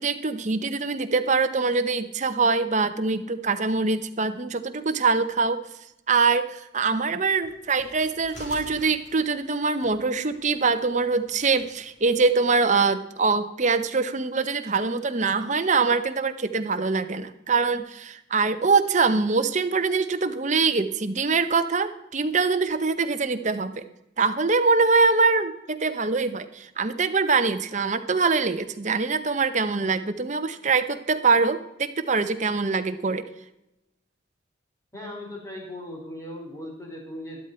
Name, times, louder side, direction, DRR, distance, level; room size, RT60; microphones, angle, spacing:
voice 1, 0.0-5.6 6.1-23.8 24.2-33.2, right 4 dB, 35° right, 9 dB, 0.8 m, -23 dB
sound 1, 7.4-12.3, equal, 40° left, 4.7 m, -49 dB
voice 2, 34.9-37.5, left 1 dB, 15° left, -1 dB, 3.6 m, -38 dB
12.5 x 12.0 x 4.4 m, 0.88 s
head